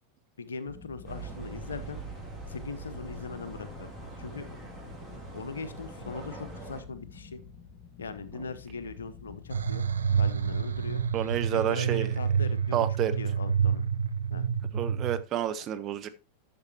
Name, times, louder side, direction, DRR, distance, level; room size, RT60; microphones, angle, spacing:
voice 1, 0.4-2.0 2.5-4.5 5.3-7.4 8.0-9.8 10.1-11.0 11.5-12.9 13.2-13.8 14.3-14.5 15.6-15.7, left 4 dB, 70° left, 13 dB, 0.9 m, -40 dB
sound 1, 0.6-11.7, left 6 dB, 40° left, 1.6 m, -49 dB
sound 2, 1.1-6.8, right 3 dB, ahead, 3.9 m, -43 dB
sound 3, 9.5-15.2, right 7 dB, 70° right, 0.6 m, -28 dB
voice 2, 11.1-12.1 12.7-13.2 14.7-16.1, right 11 dB, 35° right, 9 dB, 0.8 m, -29 dB
12.0 x 6.9 x 2.8 m, 0.29 s
figure-of-eight pair, 90°, 0 cm